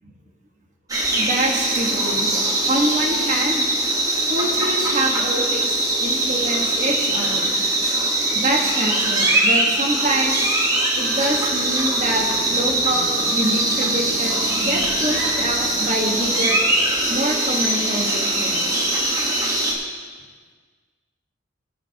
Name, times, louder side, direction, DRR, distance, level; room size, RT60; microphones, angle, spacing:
sound 1, 0.9-19.7, right 1 dB, 20° right, 1.3 m, -21 dB
voice 1, 1.1-2.3 2.7-3.7 4.3-5.7 6.0-7.6 8.3-10.4 11.0-16.6 17.1-18.9, right 1 dB, 40° right, 0 dB, 1.4 m, -25 dB
sound 2, 11.0-17.1, right 2 dB, 85° right, 2.1 m, -38 dB
18.5 x 6.5 x 2.9 m, 1.5 s
head